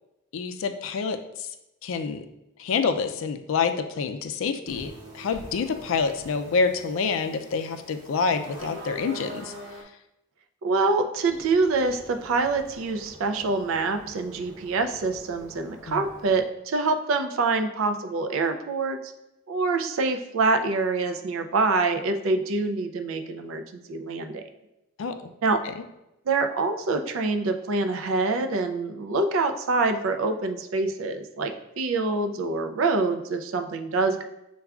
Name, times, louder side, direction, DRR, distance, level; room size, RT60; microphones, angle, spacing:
voice 1, 0.3-1.5 1.8-2.2 2.6-9.5 15.9-16.0 25.0-25.2, left 5 dB, 70° left, 8 dB, 0.3 m, -27 dB
sound 1, 4.7-9.8, equal, 60° right, 0.9 m, -43 dB
voice 2, 10.6-19.1 19.5-24.4 25.4-25.6 26.3-34.2, right 3 dB, 75° right, 6 dB, 0.4 m, -25 dB
Bird, 11.2-16.4, right 1 dB, 10° right, 0.6 m, -48 dB
6.8 x 2.3 x 2.3 m, 0.89 s
head